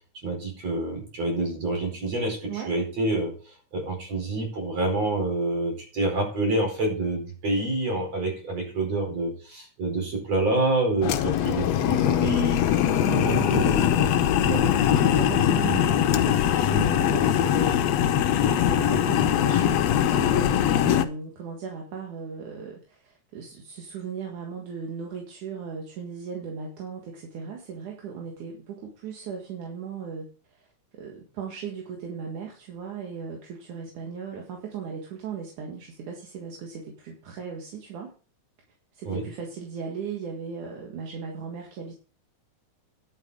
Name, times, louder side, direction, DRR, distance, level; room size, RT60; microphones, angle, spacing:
voice 1, 0.2-3.3 3.7-13.9 14.4-14.7 15.7-15.8 17.0-17.2 18.9-19.0 39.1-39.3, right 2 dB, 60° right, 1 dB, 6.1 m, -28 dB
sound 1, 11.0-21.1, left 10 dB, 70° left, 1.8 m, -22 dB
voice 2, 13.0-17.8 18.1-30.7 30.9-38.1 38.9-42.0, right 6 dB, 80° right, 0 dB, 3.3 m, -37 dB
11.0 x 8.4 x 4.9 m, 0.37 s
omnidirectional pair, 3.4 m